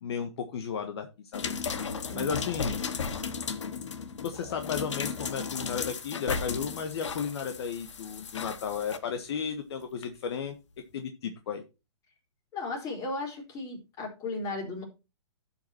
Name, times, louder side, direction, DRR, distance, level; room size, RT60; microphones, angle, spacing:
voice 1, 0.0-1.1 1.3-1.5 2.1-2.8 4.2-10.5 10.9-11.6, left 7 dB, 60° left, 7 dB, 1.5 m, -34 dB
sound 1, 1.3-9.0 10.0-10.1, left 5 dB, 80° left, 1.5 m, -35 dB
voice 2, 2.1-2.5 12.5-14.8, left 2 dB, 25° left, 2 dB, 4.3 m, -35 dB
11.5 x 6.0 x 4.5 m, 0.28 s
hypercardioid pair, 145°, 15 cm